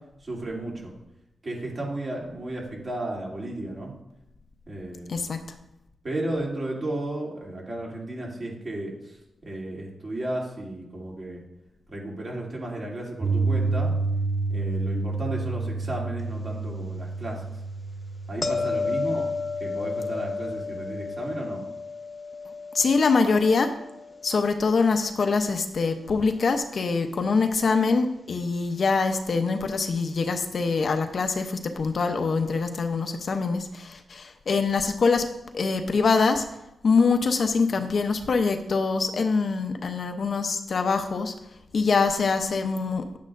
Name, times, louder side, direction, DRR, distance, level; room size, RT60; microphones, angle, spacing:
voice 1, 0.2-0.9 1.4-3.9 4.7-5.2 6.0-9.2 9.4-11.4 11.9-13.9 14.5-17.4 18.3-19.3 19.6-21.6, right 1 dB, 40° right, -3 dB, 2.9 m, -33 dB
Piano, 13.2-21.3, right 3 dB, 20° right, 0.7 m, -30 dB
sound 1, 18.4-25.4 30.7-30.8, left 4 dB, 20° left, 1.0 m, -32 dB
voice 2, 22.7-23.7 24.2-35.3 35.5-36.5 36.8-41.3 41.7-43.1, left 4 dB, 55° left, 6 dB, 0.8 m, -24 dB
10.5 x 8.5 x 2.6 m, 0.90 s
cardioid pair, 90°, 0 cm